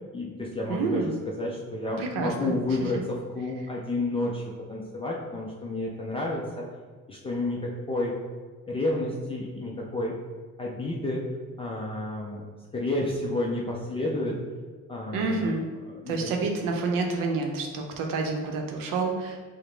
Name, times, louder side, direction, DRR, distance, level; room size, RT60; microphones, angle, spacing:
voice 1, 0.1-6.6 7.1-8.2 8.7-10.2 10.6-11.3 11.6-12.4 12.7-14.3 14.9-15.6 15.9-16.3, left 2 dB, 20° left, -3 dB, 0.3 m, -30 dB
voice 2, 0.7-1.1 2.0-2.5 15.1-15.6 16.1-19.4, right 3 dB, 90° right, 2 dB, 0.7 m, -28 dB
4.8 x 2.1 x 3.1 m, 1.5 s
cardioid pair, 135°, 32 cm